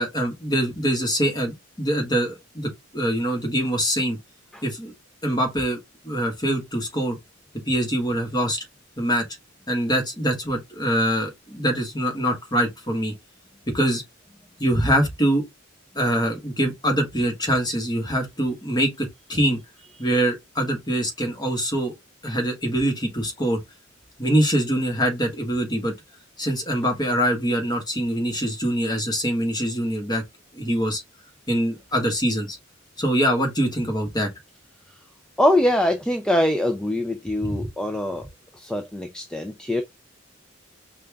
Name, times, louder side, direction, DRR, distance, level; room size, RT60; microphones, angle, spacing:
voice 1, 0.0-4.2 4.6-4.9 5.2-5.8 6.0-7.2 7.7-8.6 9.0-9.2 9.7-13.1 13.7-14.0 14.6-15.4 15.9-19.6 20.0-21.9 22.2-23.6 24.2-25.9 26.4-30.2 30.5-31.0 31.5-32.6 33.0-34.3 37.4-37.6, equal, 20° left, 1.3 m, -24 dB
voice 2, 35.4-38.3 38.6-39.8, left 1 dB, 5° left, 0.4 m, -23 dB
5.2 x 2.3 x 3.4 m
head